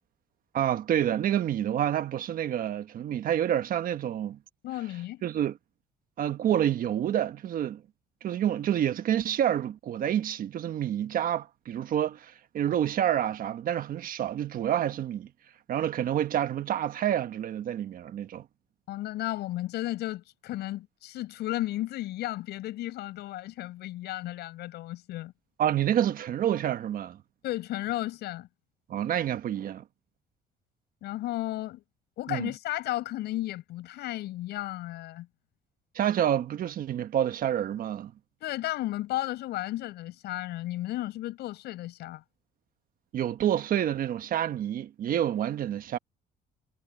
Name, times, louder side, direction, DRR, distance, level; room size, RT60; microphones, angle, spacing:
voice 1, 0.5-4.4 5.2-5.5 6.2-7.8 8.2-15.3 15.7-18.4 25.6-27.2 28.9-29.8 32.3-32.5 35.9-38.1 43.1-46.0, right 10 dB, 55° right, 1.3 m, -28 dB
voice 2, 4.6-5.2 18.9-25.3 27.4-28.5 31.0-31.8 32.2-35.3 38.4-42.2, left 15 dB, 80° left, 8.0 m, -34 dB
cardioid pair, 110°, 17 cm